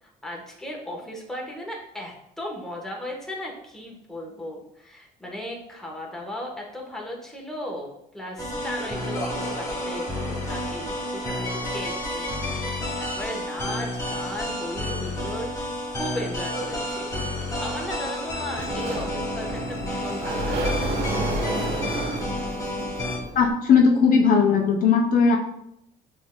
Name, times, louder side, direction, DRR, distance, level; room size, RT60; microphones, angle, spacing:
voice 1, 0.0-15.7 16.0-17.1 17.6-21.0, equal, 5° left, -1 dB, 1.1 m, -36 dB
sound 1, 8.4-23.2, left 1 dB, 20° left, 1.4 m, -30 dB
Sliding door, 18.5-23.5, right 1 dB, 85° right, 0.8 m, -30 dB
voice 2, 23.3-25.4, left 5 dB, 55° left, 2 dB, 0.5 m, -18 dB
6.0 x 3.3 x 2.2 m, 0.78 s
cardioid pair, 110°, 17 cm